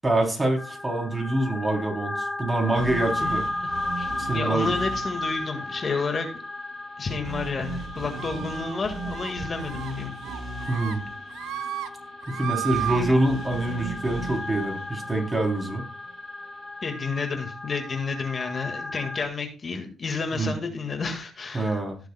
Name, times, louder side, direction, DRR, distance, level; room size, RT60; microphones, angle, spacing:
voice 1, 0.0-3.4 4.2-4.7 10.7-11.0 12.3-15.8 20.3-20.5 21.5-22.0, right 1 dB, 20° right, 1 dB, 3.2 m, -25 dB
sound 1, 0.6-19.3, left 2 dB, 20° left, 0.7 m, -35 dB
sound 2, 2.7-16.9, right 3 dB, 55° right, 5.5 m, -39 dB
voice 2, 3.6-6.3 7.0-10.1 16.8-21.8, left 4 dB, 40° left, 5 dB, 1.7 m, -31 dB
sound 3, 8.2-8.8 9.1-9.3 9.7-9.9 10.2-11.0 11.3-11.9 12.2-13.0, right 12 dB, 90° right, 0.5 m, -33 dB
17.5 x 6.9 x 2.2 m, 0.36 s
cardioid pair, 90°, 0 cm